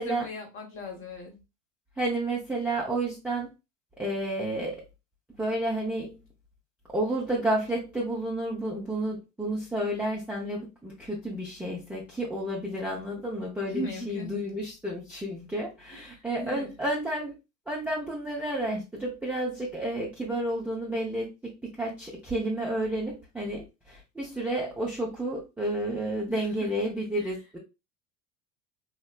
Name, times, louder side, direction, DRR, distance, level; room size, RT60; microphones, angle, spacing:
voice 1, 0.0-1.4 13.7-14.5 15.9-16.7 26.3-26.7 27.2-27.3, left 1 dB, 25° left, 2 dB, 0.9 m, -38 dB
voice 2, 2.0-3.5 4.0-4.8 5.4-6.2 6.9-17.3 17.7-27.6, right 1 dB, 5° right, -4 dB, 0.4 m, -31 dB
3.4 x 2.1 x 2.3 m, 0.27 s
figure-of-eight pair, 70°, 47 cm